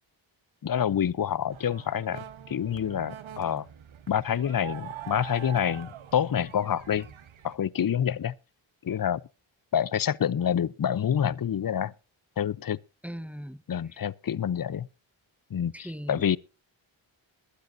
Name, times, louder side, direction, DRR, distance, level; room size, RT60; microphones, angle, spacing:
voice 1, 0.6-3.7 4.1-7.1 7.4-8.3 8.8-9.2 9.7-11.9 12.4-12.8 13.7-14.9 15.5-16.4, left 9 dB, 45° left, 0.7 m, -27 dB
sound 1, 1.5-7.6, right 8 dB, 70° right, 1.3 m, -44 dB
voice 2, 13.0-13.6 15.7-16.4, equal, 5° right, 1.0 m, -39 dB
21.0 x 10.5 x 2.6 m
wide cardioid pair, 85°, 49 cm